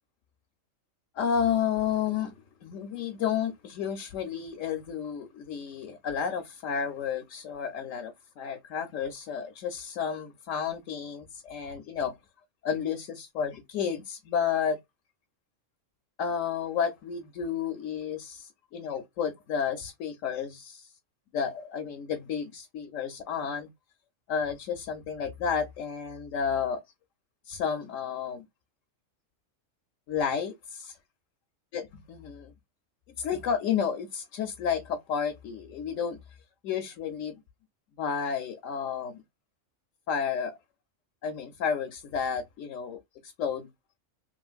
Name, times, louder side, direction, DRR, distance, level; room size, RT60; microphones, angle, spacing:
voice 1, 1.1-2.3 2.6-12.1 12.6-14.8 16.2-20.9 21.3-23.7 24.3-26.8 27.5-28.4 30.1-31.0 31.7-32.5 33.2-36.2 36.6-37.4 38.0-39.2 40.1-40.6 41.2-43.7, left 7 dB, 80° left, 1.0 m, -31 dB
3.1 x 2.9 x 2.3 m
omnidirectional pair, 1.3 m